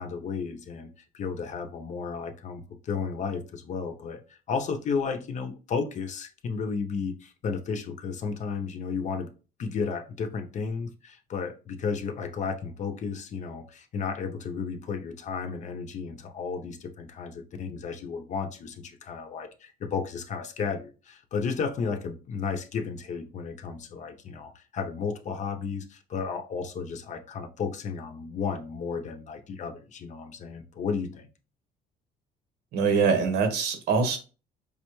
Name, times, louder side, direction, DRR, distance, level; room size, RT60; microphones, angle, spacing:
voice 1, 0.0-9.3 9.6-31.3, left 5 dB, 45° left, 0.6 m, -33 dB
voice 2, 32.7-34.2, right 5 dB, 75° right, 1.0 m, -23 dB
4.9 x 2.2 x 3.0 m
cardioid pair, 110°, 17 cm